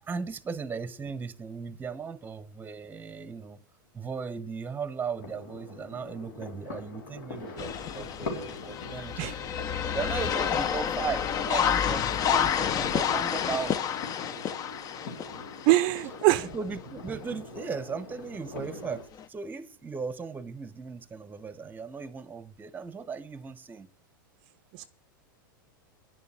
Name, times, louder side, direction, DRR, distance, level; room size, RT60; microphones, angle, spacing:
voice 1, 0.0-3.6 3.9-13.9 16.4-23.9, right 5 dB, 15° right, 0.9 m, -37 dB
sound 1, 5.2-19.0, left 3 dB, 70° left, 3.7 m, -43 dB
sound 2, 7.6-16.2 16.7-16.8 19.2-19.3, left 8 dB, 35° left, 0.8 m, -29 dB
voice 2, 15.7-16.5 24.7-24.9, right 18 dB, 50° right, 0.5 m, -23 dB
10.5 x 6.9 x 8.9 m
hypercardioid pair, 110°, 11 cm